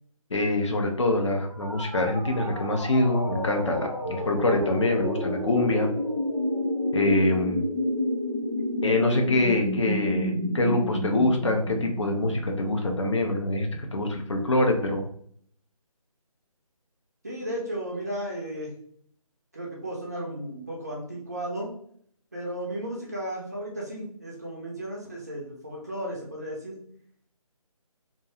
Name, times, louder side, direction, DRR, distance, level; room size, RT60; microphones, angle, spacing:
voice 1, 0.3-5.9 6.9-7.6 8.8-15.1, left 2 dB, 50° left, 2 dB, 0.6 m, -25 dB
sound 1, 1.5-13.3, left 1 dB, 10° left, 0.7 m, -30 dB
voice 2, 17.2-18.7 19.5-21.7 22.3-26.8, right 1 dB, 30° right, -3 dB, 0.4 m, -34 dB
2.4 x 2.2 x 2.8 m, 0.62 s
figure-of-eight pair, 155°, 19 cm